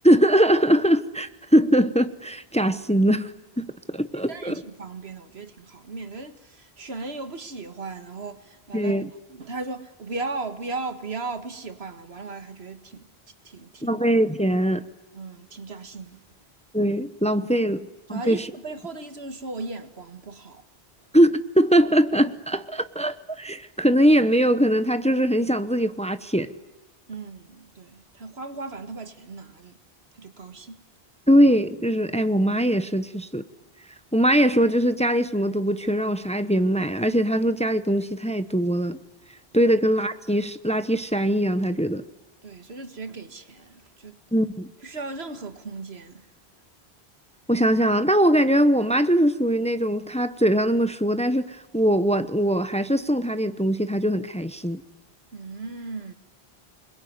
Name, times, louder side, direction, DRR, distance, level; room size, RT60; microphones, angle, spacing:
voice 1, 0.0-3.3 3.6-4.6 8.7-9.1 13.8-14.9 16.7-18.5 21.1-26.5 31.3-33.4 34.1-39.0 39.5-42.0 44.3-44.7 47.5-54.8, equal, 5° left, 0.9 m, -21 dB
voice 2, 4.3-9.0 9.3-13.1 13.4-14.0 15.1-16.2 18.1-20.6 27.1-29.8 30.1-30.8 42.4-44.2 44.8-46.2 55.3-56.1, right 3 dB, 90° right, 2.1 m, -36 dB
28.0 x 21.5 x 9.6 m
omnidirectional pair, 1.0 m